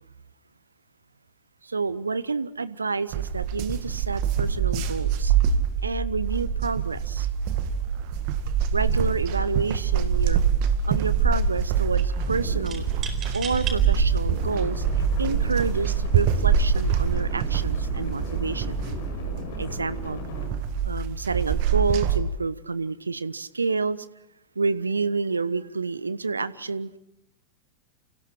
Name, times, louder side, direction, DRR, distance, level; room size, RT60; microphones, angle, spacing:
voice 1, 1.6-5.3 5.8-7.3 8.7-10.4 10.9-12.9 13.3-14.8 15.2-18.8 19.6-20.2 20.8-24.1 24.6-27.0, right 4 dB, 75° right, 18 dB, 0.8 m, -29 dB
sound 1, 3.1-22.2, right 7 dB, 45° right, 1.9 m, -25 dB
sound 2, 9.5-9.8 10.1-10.7 12.7-13.8 14.5-14.6 15.5-15.8, right 6 dB, 25° right, 4.3 m, -37 dB
sound 3, 12.2-20.5, left 3 dB, 55° left, 7.7 m, -37 dB
29.5 x 28.0 x 4.5 m, 0.89 s
figure-of-eight pair, 90°, 0 cm